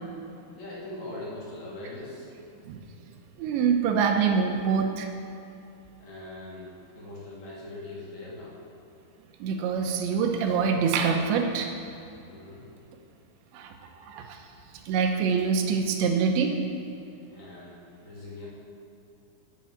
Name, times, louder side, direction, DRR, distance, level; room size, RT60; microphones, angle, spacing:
voice 1, 0.5-2.3 6.0-8.6 12.3-12.6 17.3-18.5, left 2 dB, 40° left, -8 dB, 4.0 m, -41 dB
voice 2, 3.4-5.1 9.4-11.8 13.5-13.7 14.0-14.4 14.9-16.6, right 6 dB, 80° right, 3 dB, 3.1 m, -25 dB
10.5 x 8.3 x 8.6 m, 2.7 s
omnidirectional pair, 5.2 m